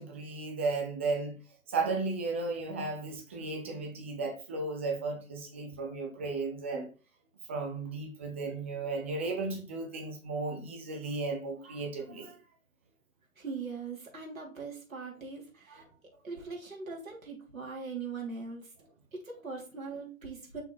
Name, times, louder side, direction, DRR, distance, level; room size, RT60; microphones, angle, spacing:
voice 1, 0.0-1.4 1.7-6.9 7.5-12.4 15.7-15.8, right 3 dB, 10° right, 0.4 m, -34 dB
voice 2, 13.4-15.8 16.2-18.7 19.1-20.6, right 4 dB, 80° right, 3.0 m, -41 dB
6.2 x 3.8 x 4.5 m
figure-of-eight pair, 135°, 41 cm